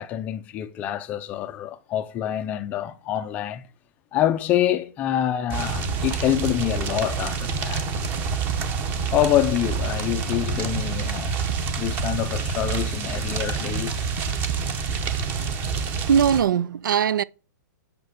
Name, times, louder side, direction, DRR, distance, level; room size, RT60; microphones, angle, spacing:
voice 1, 0.0-3.6 4.1-7.9 9.1-11.4 11.8-14.1, left 12 dB, 15° left, 0.5 m, -26 dB
sound 1, 5.5-16.4, right 5 dB, 15° right, 0.9 m, -27 dB
voice 2, 16.1-17.2, right 8 dB, 80° right, 0.6 m, -20 dB
8.8 x 5.9 x 7.9 m
hypercardioid pair, 175°, 10 cm